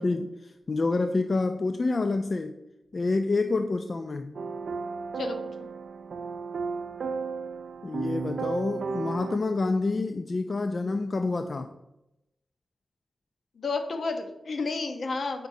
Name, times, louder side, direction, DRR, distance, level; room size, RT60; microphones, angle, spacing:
voice 1, 0.0-2.6 2.9-4.4 7.8-11.7, left 3 dB, 50° left, 8 dB, 0.3 m, -28 dB
sound 1, 4.3-9.4, right 5 dB, 75° right, 0.4 m, -34 dB
voice 2, 5.1-5.7 13.6-15.5, left 3 dB, 75° left, 5 dB, 0.8 m, -31 dB
8.0 x 5.1 x 2.7 m, 0.93 s
cardioid pair, 75°, 0 cm